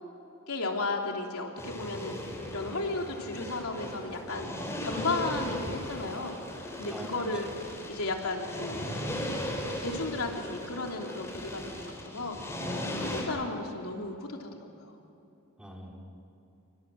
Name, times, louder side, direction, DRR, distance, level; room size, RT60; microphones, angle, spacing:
voice 1, 0.5-2.1 2.5-4.5 4.8-6.4 6.8-7.5 7.9-9.2 9.8-15.0, left 3 dB, 80° left, 1 dB, 3.3 m, -34 dB
sound 1, 1.6-13.2, left 1 dB, 10° left, 4.9 m, -37 dB
voice 2, 6.8-7.5 13.0-13.3 15.6-16.1, equal, 5° right, -2 dB, 4.7 m, -44 dB
29.0 x 24.5 x 7.5 m, 2.8 s
head